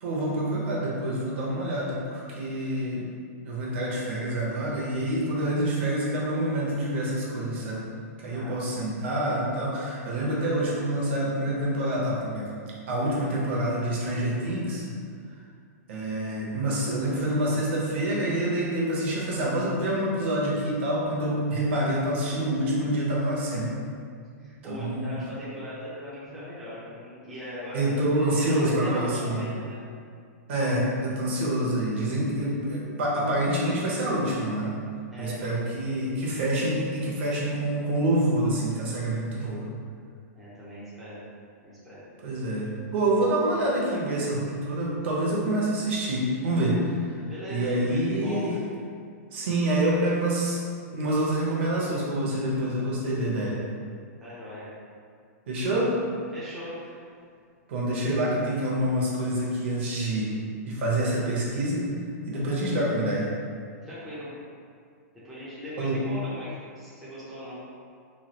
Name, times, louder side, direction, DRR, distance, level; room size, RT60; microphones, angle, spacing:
voice 1, 0.0-3.0 3.4-7.8 8.2-12.5 12.9-14.9 15.9-23.7 24.4-25.2 27.7-29.4 30.5-34.8 35.2-39.6 42.2-47.1 47.5-48.6 49.3-50.6 50.9-53.6 55.5-55.9 57.7-60.3 60.6-61.9 62.3-63.3 65.8-65.9, right 1 dB, 45° right, -5 dB, 0.7 m, -27 dB
voice 2, 8.2-8.7 24.4-27.9 28.4-29.8 35.1-35.7 40.3-41.2 41.6-42.0 47.2-48.6 54.2-54.7 56.3-56.8 63.8-64.3 65.2-67.6, left 1 dB, ahead, -13 dB, 0.4 m, -39 dB
3.1 x 2.3 x 2.8 m, 2.2 s
supercardioid pair, 175°, 9 cm